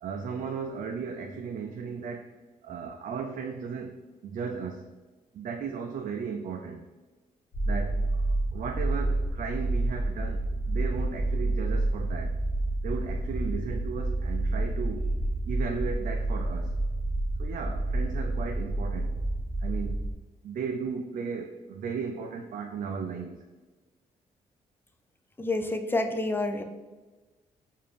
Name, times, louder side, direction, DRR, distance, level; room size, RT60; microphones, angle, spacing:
voice 1, 0.0-2.3 2.6-3.9 4.2-4.8 5.3-6.8 7.6-12.4 12.8-15.1 15.5-16.8 17.4-19.1 19.6-20.0 20.4-23.4, right 5 dB, 60° right, 3 dB, 0.4 m, -35 dB
sound 1, 7.5-20.1, right 2 dB, 55° left, 0.8 m, -29 dB
voice 2, 25.4-26.6, left 2 dB, 15° left, 6 dB, 0.5 m, -28 dB
4.7 x 2.6 x 3.4 m, 1.3 s
supercardioid pair, 55°, 15 cm